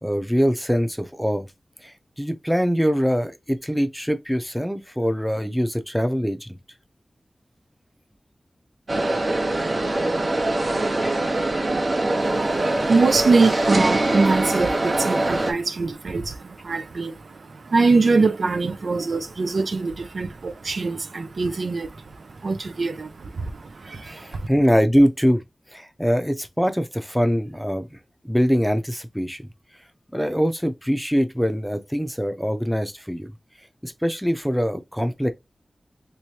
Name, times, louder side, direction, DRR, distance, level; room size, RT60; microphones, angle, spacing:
voice 1, 0.0-1.5 1.8-6.5 24.0-25.4 25.7-27.9 28.2-29.5 30.1-33.3 33.8-35.3, equal, ahead, 0.6 m, -23 dB
sound 1, 8.9-15.5, right 2 dB, 55° right, 0.9 m, -23 dB
voice 2, 12.2-24.5, right 3 dB, 80° right, 0.5 m, -23 dB
3.2 x 3.1 x 2.8 m
wide cardioid pair, 75°, 0 cm